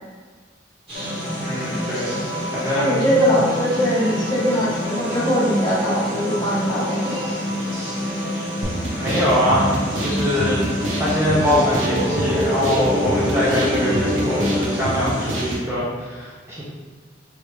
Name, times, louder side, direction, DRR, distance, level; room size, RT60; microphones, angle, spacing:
sound 1, 0.9-14.7, left 1 dB, 70° left, 0.8 m, -28 dB
sound 2, 0.9-15.6, equal, 30° right, 1.3 m, -30 dB
voice 1, 1.4-2.2 2.5-3.0 8.9-10.6 11.0-16.6, equal, 15° right, -9 dB, 0.5 m, -23 dB
voice 2, 2.7-7.2, equal, 25° left, -9 dB, 1.0 m, -21 dB
sound 3, 8.6-15.7, right 1 dB, 85° right, 0.6 m, -27 dB
3.0 x 2.4 x 3.2 m, 1.5 s
head